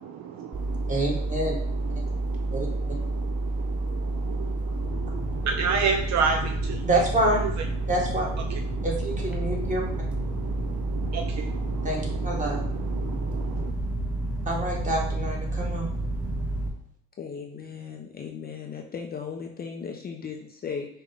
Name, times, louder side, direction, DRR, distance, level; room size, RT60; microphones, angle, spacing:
voice 1, 0.0-6.9 7.4-7.9 8.4-8.9 9.4-13.7, right 5 dB, 50° right, 5 dB, 0.5 m, -33 dB
sound 1, 0.5-16.7, right 2 dB, 5° right, 0.9 m, -30 dB
voice 2, 0.9-1.5 2.5-2.7 6.8-7.4 7.9-8.3 8.8-9.9 11.8-12.6 14.5-15.9, right 1 dB, 20° right, -2 dB, 1.5 m, -27 dB
voice 3, 17.2-20.9, left 6 dB, 25° left, 2 dB, 0.5 m, -36 dB
5.3 x 2.3 x 3.4 m, 0.67 s
supercardioid pair, 85°, 36 cm